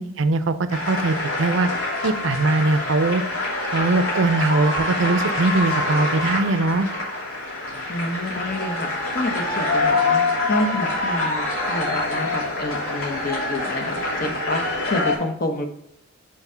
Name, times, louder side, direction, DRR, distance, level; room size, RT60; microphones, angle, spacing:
voice 1, 0.2-1.7 2.0-3.2 3.7-6.9, right 3 dB, 60° right, 12 dB, 0.5 m, -21 dB
sound 1, 0.7-15.2, left 2 dB, 80° left, 2.9 m, -25 dB
voice 2, 7.9-15.7, left 1 dB, 45° left, 4 dB, 0.9 m, -28 dB
5.9 x 4.8 x 5.5 m, 0.76 s
head